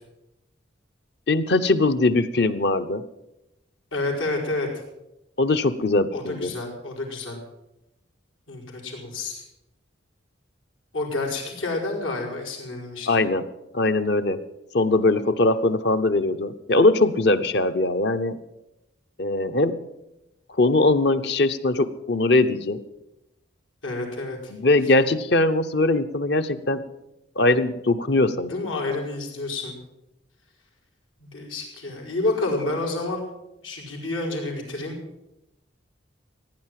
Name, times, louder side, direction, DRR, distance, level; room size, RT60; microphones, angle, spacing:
voice 1, 1.3-3.0 5.4-6.5 13.1-13.5 13.7-14.4 14.7-18.4 19.2-19.8 20.6-22.8 24.5-26.8 27.4-28.5, left 2 dB, 60° left, 10 dB, 0.8 m, -21 dB
voice 2, 3.9-4.7 6.1-7.4 8.5-9.4 10.9-13.2 23.8-24.5 28.5-29.7 31.2-33.2 33.6-35.0, left 2 dB, 90° left, -1 dB, 4.7 m, -29 dB
16.0 x 9.8 x 7.6 m, 0.91 s
head